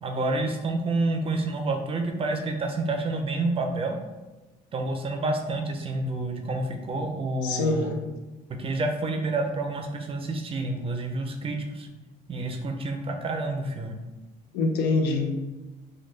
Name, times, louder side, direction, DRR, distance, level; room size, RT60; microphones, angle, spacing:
voice 1, 0.0-4.0 4.7-8.0 8.6-11.9 12.3-14.0, right 2 dB, 35° right, 4 dB, 0.4 m, -29 dB
voice 2, 7.4-7.9 14.5-15.3, left 3 dB, 85° left, 4 dB, 0.5 m, -24 dB
3.2 x 2.2 x 3.1 m, 1.1 s
cardioid pair, 110°, 17 cm